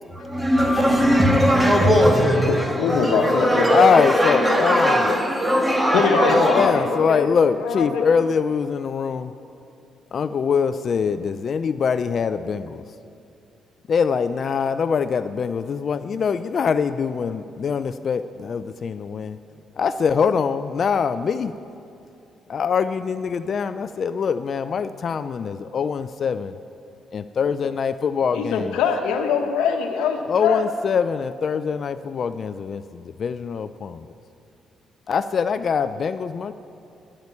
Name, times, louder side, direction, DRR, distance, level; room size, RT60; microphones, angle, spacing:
voice 1, 0.3-6.7, equal, 5° right, 2 dB, 1.8 m, -19 dB
voice 2, 2.5-3.7 5.9-7.3 7.6-8.1 28.3-30.6, left 6 dB, 90° left, 4 dB, 1.2 m, -23 dB
voice 3, 3.7-5.2 6.3-9.3 10.1-12.8 13.9-19.4 19.8-21.5 22.5-26.5 27.1-28.8 30.3-34.1 35.1-36.5, left 6 dB, 50° left, 12 dB, 0.4 m, -23 dB
11.0 x 8.8 x 8.3 m, 2.6 s
cardioid pair, 90°, 0 cm